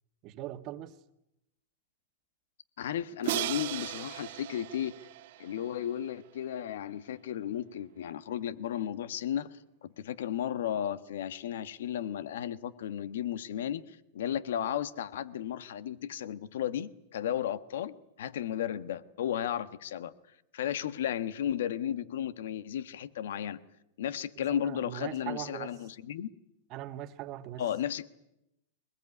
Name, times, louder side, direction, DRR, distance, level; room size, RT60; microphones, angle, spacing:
voice 1, 0.2-1.0 24.5-25.8 26.7-27.7, right 13 dB, 45° right, 1.5 m, -40 dB
voice 2, 2.8-4.9 5.4-20.1 20.5-23.6 24.0-26.3 27.6-28.1, left 10 dB, 75° left, 1.3 m, -34 dB
Crash cymbal, 3.2-6.2, right 15 dB, 65° right, 1.4 m, -37 dB
22.5 x 20.5 x 9.8 m
hypercardioid pair, 120°, 0 cm